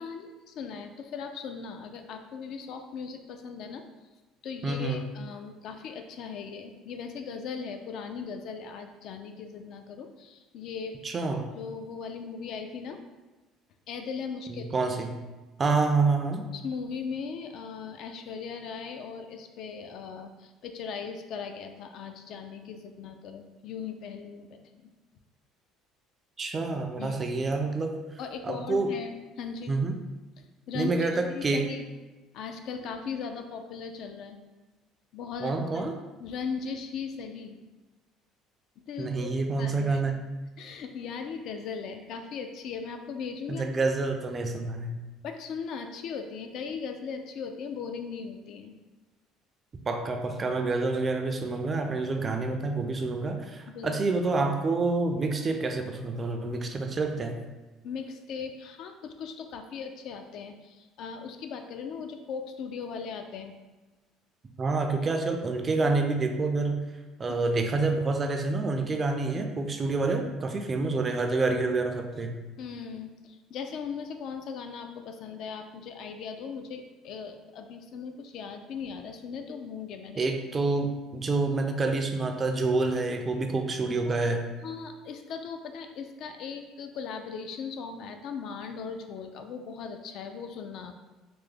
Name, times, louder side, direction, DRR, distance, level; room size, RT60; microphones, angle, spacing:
voice 1, 0.0-3.8 4.4-11.0 11.6-13.0 13.9-14.7 16.5-24.9 27.0-27.2 28.2-29.7 30.4-31.9 32.3-34.4 35.1-35.8 36.2-37.6 38.9-40.0 40.6-43.7 45.2-48.7 53.7-53.9 57.8-63.5 72.6-80.2 84.1-84.2 84.6-90.9, left 6 dB, 60° left, 6 dB, 0.3 m, -38 dB
voice 2, 4.6-5.0 11.0-11.4 14.5-15.1 15.6-16.4 26.4-28.0 28.4-28.9 29.7-30.0 30.7-31.6 35.4-35.9 39.0-40.2 43.5-45.0 49.9-57.4 64.6-66.8 67.2-72.3 80.2-84.4, right 3 dB, 25° right, 4 dB, 0.3 m, -28 dB
3.4 x 2.0 x 3.3 m, 1.2 s
cardioid pair, 130°, 0 cm